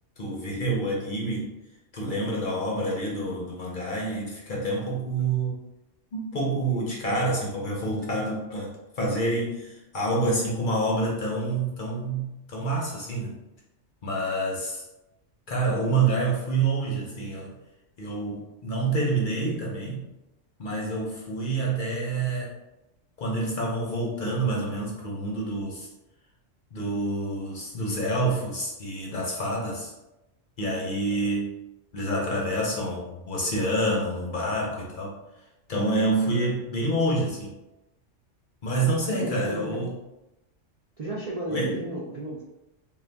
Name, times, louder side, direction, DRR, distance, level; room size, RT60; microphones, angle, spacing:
voice 1, 0.2-1.5 1.9-5.6 6.1-8.7 9.0-13.4 14.0-14.8 15.5-17.5 18.0-20.0 20.6-22.5 23.2-25.9 26.7-29.9 30.6-31.5 31.9-35.1 35.7-37.5 38.6-39.9 41.5-41.7, right 2 dB, 50° left, -3 dB, 0.7 m, -27 dB
voice 2, 2.1-2.4 39.1-39.9 41.0-42.4, right 1 dB, 55° right, -5 dB, 0.4 m, -33 dB
2.6 x 2.5 x 3.3 m, 0.95 s
omnidirectional pair, 1.3 m